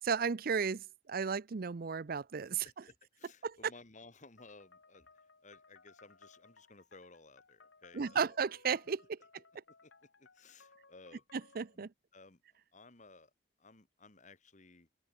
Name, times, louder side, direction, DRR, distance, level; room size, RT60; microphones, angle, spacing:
voice 1, 0.0-2.7 3.4-3.5 7.9-9.2 11.6-11.9, right 6 dB, 55° right, 0.5 m, -34 dB
voice 2, 2.6-8.4 9.7-9.9 10.2-11.2 11.7-12.4 12.7-13.3 13.6-14.9, left 3 dB, 40° left, 2.5 m, -58 dB
sound 1, 4.4-11.8, left 4 dB, 85° left, 2.9 m, -63 dB
open air
head